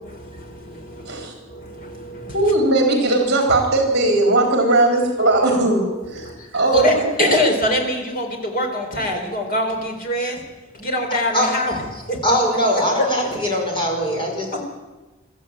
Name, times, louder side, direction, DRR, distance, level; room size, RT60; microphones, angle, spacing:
voice 1, 0.0-2.4 6.1-6.5 6.7-10.4 10.7-11.8 12.1-12.2 13.0-13.4 14.5-14.6, equal, 40° left, 2 dB, 4.2 m, -24 dB
voice 2, 2.3-7.3, right 2 dB, 50° right, 2 dB, 3.9 m, -19 dB
voice 3, 12.2-14.5, equal, 25° left, 0 dB, 5.3 m, -21 dB
22.5 x 13.5 x 9.0 m, 1.2 s
head